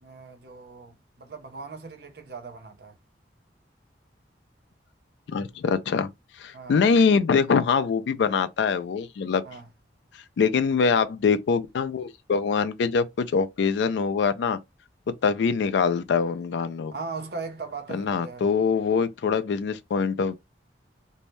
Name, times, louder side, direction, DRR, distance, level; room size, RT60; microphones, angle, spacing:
voice 1, 0.0-3.0 6.5-6.8 9.4-9.7 16.9-18.5, right 4 dB, 60° right, 0.6 m, -39 dB
voice 2, 5.3-6.1 6.4-9.4 10.1-14.6 15.1-16.9 17.9-20.3, left 5 dB, 75° left, 0.3 m, -24 dB
2.6 x 2.1 x 3.1 m
head